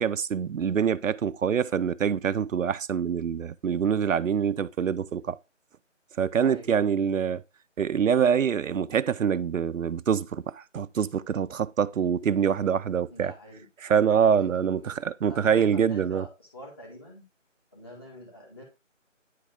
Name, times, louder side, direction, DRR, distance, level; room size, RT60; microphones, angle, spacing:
voice 1, 0.0-5.4 6.2-7.4 7.8-13.3 13.8-16.2, right 7 dB, 90° right, 0.5 m, -25 dB
voice 2, 6.4-6.8 13.1-13.7 14.2-14.9 15.3-17.2 17.7-18.6, left 1 dB, 20° left, 1.7 m, -45 dB
9.2 x 3.7 x 3.5 m
figure-of-eight pair, 165°, 38 cm